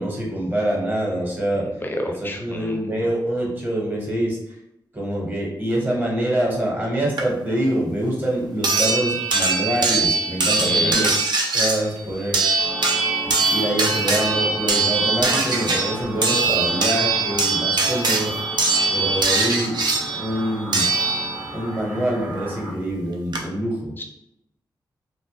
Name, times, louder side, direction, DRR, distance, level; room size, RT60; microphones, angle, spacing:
voice 1, 0.0-1.7 2.2-4.4 4.9-11.1 11.5-12.4 13.2-18.4 18.9-19.8 20.2-20.9 21.5-24.0, right 1 dB, 25° right, -3 dB, 0.8 m, -25 dB
voice 2, 1.8-2.8 10.6-11.1 24.0-24.1, left 1 dB, 25° left, 3 dB, 0.4 m, -28 dB
sound 1, 7.2-7.3 8.6-21.6 22.9-23.0 23.3-23.4, right 3 dB, 65° right, 0.4 m, -22 dB
sound 2, 12.6-22.7, equal, 85° right, 0.8 m, -34 dB
2.1 x 2.1 x 2.8 m, 0.81 s
wide cardioid pair, 90°, 8 cm